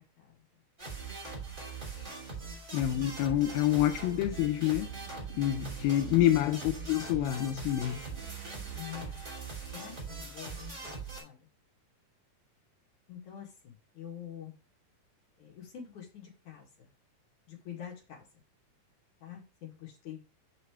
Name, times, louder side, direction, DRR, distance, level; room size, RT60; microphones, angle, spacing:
sound 1, 0.8-11.2, right 4 dB, 15° right, 2.5 m, -41 dB
voice 1, 2.7-4.9 5.4-8.0, left 13 dB, 90° left, 2.4 m, -27 dB
sound 2, 2.8-8.8, right 10 dB, 80° right, 2.1 m, -49 dB
voice 2, 6.2-6.6 8.7-9.2 9.7-11.5 13.1-14.6 15.4-16.9 17.5-18.3 19.2-20.2, left 10 dB, 60° left, 3.5 m, -46 dB
7.1 x 6.0 x 3.3 m
omnidirectional pair, 4.1 m